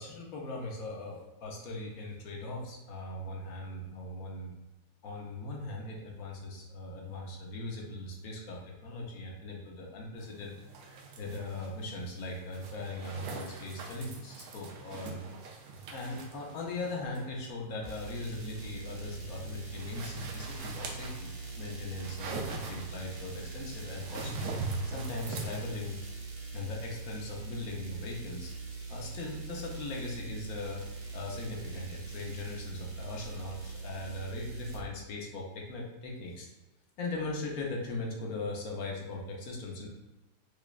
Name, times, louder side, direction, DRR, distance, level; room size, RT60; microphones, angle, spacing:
voice 1, 0.0-4.5 5.0-10.6 11.1-15.3 15.9-21.3 21.6-24.5 24.9-26.0 26.5-28.5 28.9-30.9 31.1-36.5 37.0-39.9, left 2 dB, 65° left, -1 dB, 1.0 m, -39 dB
sound 1, 10.2-25.6, right 4 dB, 70° right, 1.0 m, -43 dB
sound 2, 17.8-34.8, right 4 dB, 45° right, 0.6 m, -42 dB
4.9 x 2.3 x 2.3 m, 1.1 s
omnidirectional pair, 1.9 m